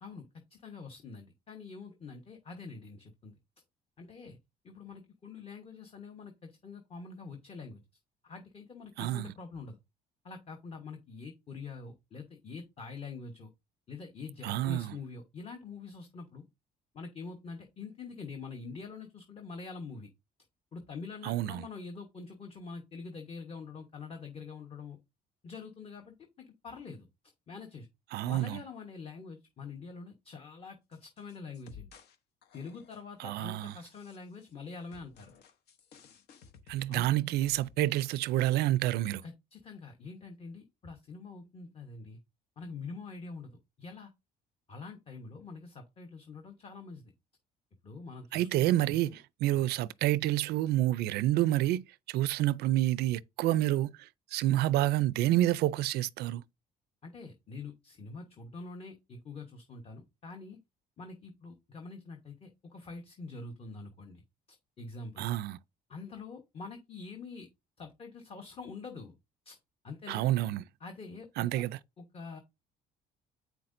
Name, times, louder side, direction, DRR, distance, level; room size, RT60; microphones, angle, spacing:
voice 1, 0.0-3.4 4.0-4.4 4.6-7.8 8.2-9.8 10.2-13.5 13.9-16.4 16.9-20.1 20.7-25.0 25.4-27.1 27.5-27.9 28.2-31.9 32.5-35.3 36.9-37.3 39.2-42.2 42.6-44.1 44.7-47.1 47.8-49.2 49.5-49.6 57.0-60.6 61.0-64.2 64.8-65.3 65.9-67.5 67.8-69.1 69.4-69.6 69.8-70.3 70.8-71.6 72.0-72.4, left 4 dB, 35° left, 1.0 m, -45 dB
voice 2, 9.0-9.3 14.4-14.9 21.2-21.6 28.1-28.6 33.2-33.7 36.7-39.2 48.3-49.1 49.4-56.4 65.2-65.6 70.1-70.6 71.4-71.8, right 14 dB, 75° right, 0.4 m, -28 dB
sound 1, 30.9-32.2 32.4-33.1 33.7-34.5 34.9-38.2 38.4-38.5, left 7 dB, 75° left, 0.9 m, -56 dB
8.1 x 5.9 x 2.6 m
cardioid pair, 110°, 17 cm